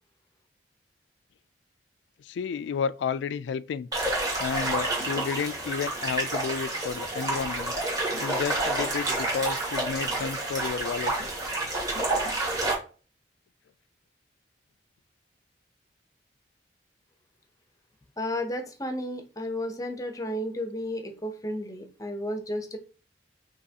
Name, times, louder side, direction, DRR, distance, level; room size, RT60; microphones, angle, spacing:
voice 1, 2.2-7.7 8.2-11.1, left 6 dB, 85° left, 0.3 m, -32 dB
sound 1, 3.9-12.7, right 2 dB, 20° right, 1.6 m, -29 dB
voice 2, 18.2-22.8, left 1 dB, 20° left, 0.6 m, -33 dB
5.4 x 3.0 x 2.8 m
head